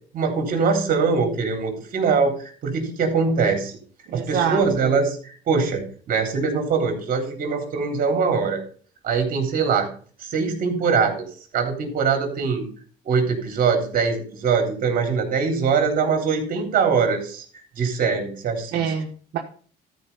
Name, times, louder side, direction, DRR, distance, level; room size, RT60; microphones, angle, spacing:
voice 1, 0.1-3.7 4.1-8.6 9.0-9.9 10.2-11.2 11.5-12.6 13.0-18.8, right 5 dB, 55° right, 3 dB, 3.5 m, -22 dB
voice 2, 4.1-4.9 18.7-19.4, right 8 dB, 75° right, 1 dB, 1.4 m, -26 dB
13.0 x 5.1 x 5.5 m, 0.44 s
cardioid pair, 110°, 17 cm